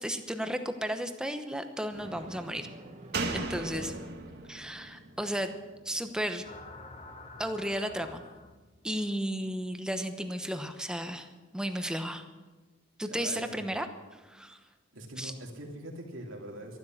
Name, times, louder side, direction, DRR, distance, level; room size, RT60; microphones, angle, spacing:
voice 1, 0.0-2.7 3.3-3.9 4.5-5.5 5.8-6.5 7.4-8.2 8.8-11.3 11.5-12.2 13.0-13.9 14.1-14.6 15.2-15.3, equal, 5° right, 7 dB, 1.0 m, -34 dB
Thunder, 1.9-4.4, right 1 dB, 40° right, 1.8 m, -49 dB
Slam, 3.1-6.6 6.9-7.0, right 3 dB, 55° right, 1.6 m, -38 dB
voice 2, 3.5-4.2 13.0-13.7 14.9-16.8, right 1 dB, 85° right, 0 dB, 3.0 m, -43 dB
sound 1, 6.4-8.8, left 2 dB, 30° left, 1.1 m, -48 dB
12.5 x 12.0 x 7.4 m, 1.3 s
head